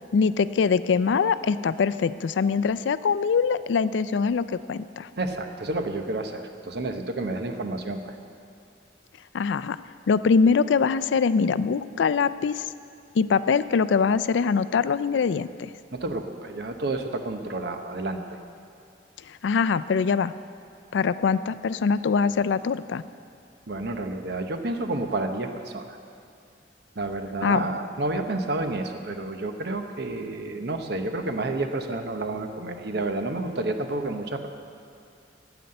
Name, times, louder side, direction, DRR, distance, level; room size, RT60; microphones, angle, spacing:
voice 1, 0.1-5.1 9.3-9.8 10.1-12.7 13.2-15.7 19.3-20.3 20.9-23.0 27.4-27.6, left 5 dB, 85° left, 15 dB, 0.4 m, -23 dB
voice 2, 5.2-8.2 15.9-18.4 23.7-26.0 27.0-34.5, right 2 dB, 65° right, 6 dB, 0.9 m, -30 dB
9.4 x 9.1 x 7.7 m, 2.4 s
head